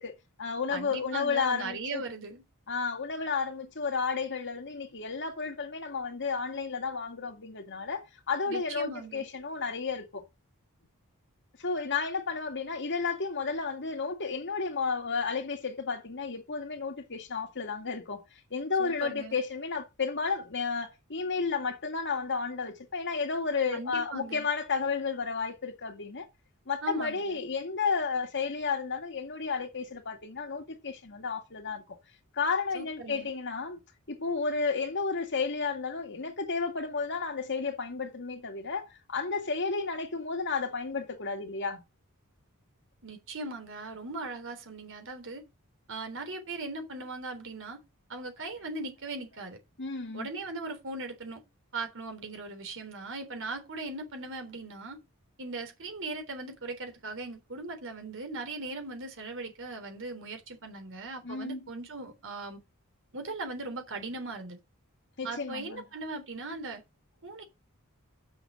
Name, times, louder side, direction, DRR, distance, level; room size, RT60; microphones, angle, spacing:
voice 1, 0.0-2.0 2.7-10.2 11.6-18.2 18.5-26.3 26.7-32.0 32.3-33.8 34.1-41.8 49.8-50.3 61.2-61.6 65.2-65.8, left 5 dB, 55° left, 2.2 m, -32 dB
voice 2, 0.7-2.4 8.5-9.3 18.8-19.4 23.7-24.5 26.8-27.4 32.7-33.3 43.0-45.4 45.9-47.8 48.1-49.6 50.1-51.4 51.7-55.0 55.4-62.6 63.1-64.6 65.2-66.8 67.2-67.4, right 3 dB, 60° right, 3.6 m, -39 dB
7.2 x 7.1 x 6.3 m
head